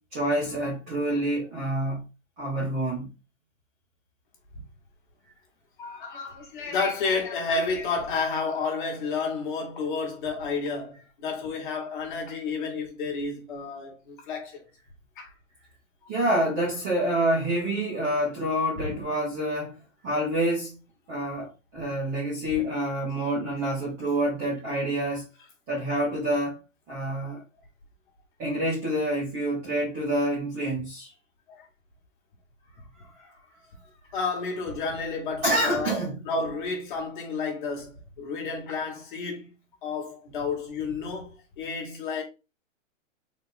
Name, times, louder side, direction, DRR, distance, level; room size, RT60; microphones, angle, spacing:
voice 1, 0.1-2.0 2.4-3.1 16.1-19.8 20.0-20.8 21.1-25.3 25.7-26.6 26.9-27.4 28.4-31.1 35.4-36.2, right 1 dB, 10° right, 0.5 m, -27 dB
voice 2, 5.8-14.6 15.2-15.3 18.8-18.9 31.5-31.6 34.1-36.0 36.2-39.5 39.8-42.2, left 4 dB, 40° left, 1.3 m, -31 dB
4.0 x 2.4 x 3.7 m
hypercardioid pair, 165°, 39 cm